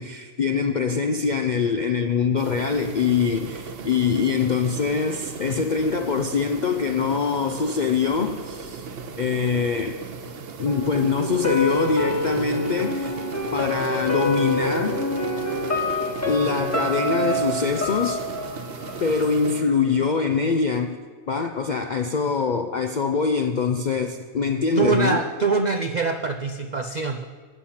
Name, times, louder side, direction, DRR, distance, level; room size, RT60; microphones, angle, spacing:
voice 1, 0.0-8.9 9.2-10.0 10.6-13.2 13.5-15.0 16.3-18.2 19.0-21.0 21.3-25.2, left 5 dB, 70° left, 6 dB, 0.4 m, -24 dB
sound 1, 2.4-19.6, right 5 dB, 50° right, 0.9 m, -37 dB
sound 2, 10.7-19.6 20.0-20.1, left 1 dB, 10° left, 1.0 m, -27 dB
voice 2, 24.8-27.3, right 4 dB, 90° right, 5 dB, 0.3 m, -24 dB
12.5 x 8.7 x 5.8 m, 1.5 s
omnidirectional pair, 1.5 m